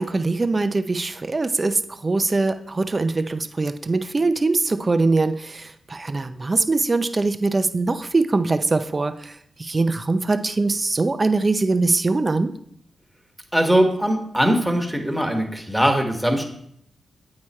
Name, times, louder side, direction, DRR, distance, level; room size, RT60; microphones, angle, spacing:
voice 1, 0.0-9.3 9.6-12.5, right 3 dB, 35° right, 10 dB, 0.6 m, -22 dB
voice 2, 13.5-16.5, equal, 5° right, 3 dB, 1.5 m, -20 dB
8.3 x 4.8 x 4.3 m, 0.70 s
cardioid pair, 60°, 0 cm